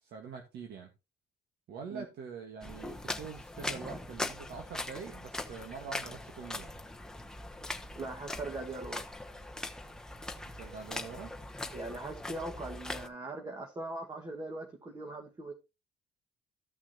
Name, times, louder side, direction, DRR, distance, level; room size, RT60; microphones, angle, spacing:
voice 1, 0.0-0.9 1.7-6.7 10.6-11.3, right 6 dB, 70° right, 1.6 m, -44 dB
sound 1, 2.6-13.1, left 2 dB, 5° left, 0.9 m, -41 dB
voice 2, 7.9-9.1 11.7-15.5, right 2 dB, 25° right, 1.7 m, -40 dB
14.0 x 6.1 x 2.9 m
cardioid pair, 110°, 17 cm